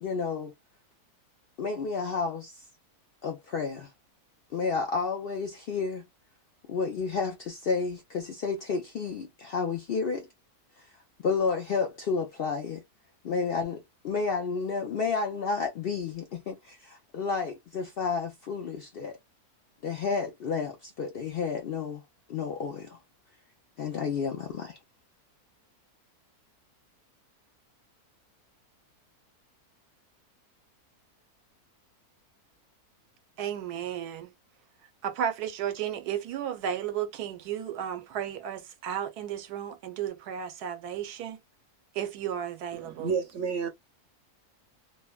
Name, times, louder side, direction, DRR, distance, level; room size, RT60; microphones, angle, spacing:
voice 1, 0.0-0.5 1.6-2.6 3.2-3.9 4.5-6.0 6.7-10.3 11.2-12.8 13.2-19.2 19.8-22.0 22.3-23.0 23.8-24.8, left 5 dB, 75° left, 0.5 m, -31 dB
voice 2, 33.4-34.3 35.0-41.4 42.0-43.1, right 9 dB, 85° right, 1.2 m, -33 dB
voice 3, 42.7-43.7, right 6 dB, 60° right, 0.9 m, -30 dB
3.1 x 2.1 x 2.2 m
omnidirectional pair, 1.6 m